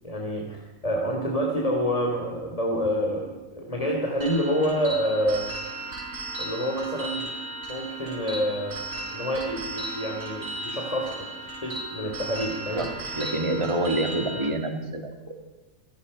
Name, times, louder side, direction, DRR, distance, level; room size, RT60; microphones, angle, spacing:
voice 1, 0.0-0.6 0.8-5.5 6.4-7.3 7.7-8.8 9.1-12.9, equal, 25° left, 0 dB, 3.3 m, -27 dB
sound 1, 4.2-14.5, right 2 dB, 90° right, 3.9 m, -36 dB
voice 2, 12.7-15.3, right 2 dB, 20° right, 4 dB, 2.7 m, -27 dB
27.5 x 18.5 x 5.5 m, 1.2 s
omnidirectional pair, 1.4 m